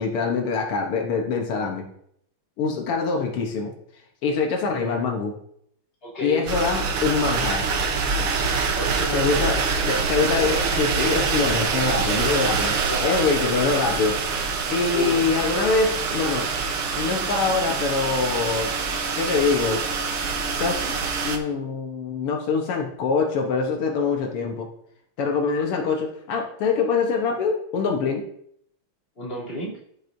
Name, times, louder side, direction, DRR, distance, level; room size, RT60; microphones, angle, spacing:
voice 1, 0.0-1.8 2.6-3.7 4.2-5.4 6.2-7.6 9.1-9.6 9.9-14.2 14.7-16.5 17.0-19.8 20.6-21.0 21.2-24.7 25.2-28.3, left 4 dB, 90° left, 1 dB, 2.1 m, -24 dB
voice 2, 4.6-5.1 6.0-6.4 8.7-10.0 12.9-13.4 14.9-15.3 29.2-29.8, left 1 dB, 25° left, -8 dB, 3.4 m, -32 dB
sound 1, 6.5-21.4, right 5 dB, 85° right, 2.0 m, -25 dB
14.0 x 6.3 x 2.7 m, 0.68 s
omnidirectional pair, 2.4 m